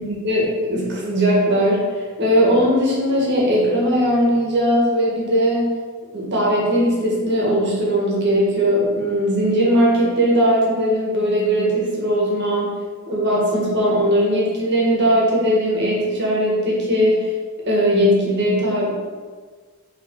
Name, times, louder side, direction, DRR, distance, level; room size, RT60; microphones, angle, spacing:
voice 1, 0.0-5.7 6.1-12.7 13.1-17.3 17.6-18.9, equal, 55° right, -4 dB, 1.8 m, -19 dB
6.0 x 3.7 x 4.8 m, 1.5 s
head